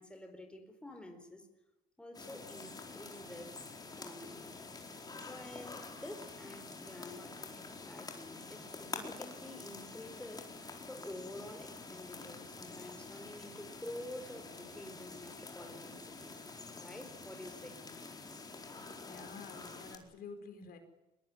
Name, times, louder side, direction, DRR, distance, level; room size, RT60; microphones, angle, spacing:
voice 1, 0.0-1.5 2.0-3.6 3.9-4.6 5.2-16.4 16.8-17.8, left 1 dB, 5° left, 5 dB, 4.4 m, -49 dB
sound 1, 2.1-20.0, left 3 dB, 25° left, 4.4 m, -48 dB
voice 2, 19.0-20.8, left 4 dB, 65° left, 6 dB, 4.9 m, -49 dB
23.5 x 21.5 x 9.7 m, 0.99 s
cardioid pair, 110°, 17 cm